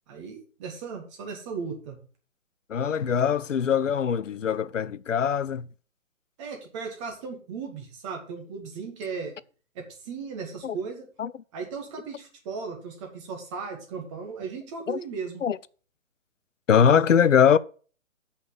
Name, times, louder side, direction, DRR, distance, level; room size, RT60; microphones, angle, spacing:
voice 1, 0.1-2.0 6.4-9.3 9.8-11.1 11.5-15.4, right 5 dB, 25° right, 2.0 m, -36 dB
voice 2, 2.7-5.7 10.6-10.8 11.2-11.3 14.9-15.0 15.4-15.6 16.7-17.6, left 7 dB, 65° left, 0.6 m, -22 dB
6.8 x 5.7 x 7.1 m
figure-of-eight pair, 135°, 40 cm